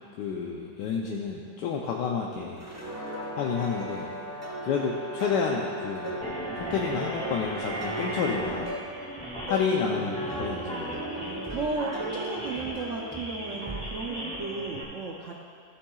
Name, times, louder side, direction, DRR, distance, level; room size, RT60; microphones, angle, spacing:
voice 1, 0.2-2.7 3.4-4.1 4.6-6.4 6.7-8.7 9.5-11.4, left 5 dB, 80° left, -1 dB, 1.3 m, -30 dB
sound 1, 2.4-13.8, equal, 15° right, 0.6 m, -40 dB
Brass instrument, 2.8-8.6, right 1 dB, 35° right, 2.6 m, -40 dB
sound 2, 6.2-14.8, right 1 dB, 5° left, 1.6 m, -36 dB
voice 2, 10.0-10.3 11.5-15.3, right 3 dB, 65° right, -1 dB, 0.8 m, -34 dB
14.5 x 8.5 x 2.3 m, 2.3 s
omnidirectional pair, 1.9 m